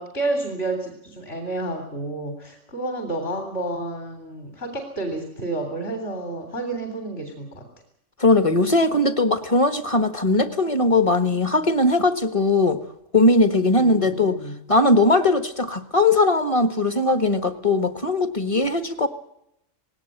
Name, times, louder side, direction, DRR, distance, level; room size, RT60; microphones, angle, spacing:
voice 1, 0.0-7.6 13.8-14.5, right 2 dB, 50° left, 4 dB, 3.7 m, -30 dB
voice 2, 8.2-12.8 13.1-14.4 14.7-19.1, left 2 dB, 25° left, 9 dB, 1.4 m, -19 dB
19.5 x 17.5 x 9.1 m, 0.79 s
omnidirectional pair, 1.4 m